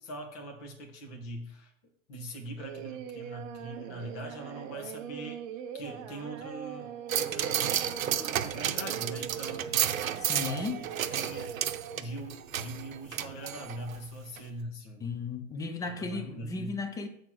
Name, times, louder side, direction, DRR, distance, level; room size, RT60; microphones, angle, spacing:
voice 1, 0.0-1.7 2.1-5.4 5.7-10.0 10.4-10.7 11.1-11.5 12.0-15.0 15.8-16.8, right 1 dB, 40° left, 2.2 m, -42 dB
Singing, 2.6-12.0, right 8 dB, 35° right, 0.8 m, -42 dB
sound 1, 7.1-14.0 14.4-14.5, right 9 dB, 75° right, 0.8 m, -32 dB
voice 2, 10.2-10.8 15.0-17.1, left 4 dB, 10° left, 0.5 m, -35 dB
7.4 x 4.4 x 6.3 m
hypercardioid pair, 120°, 41 cm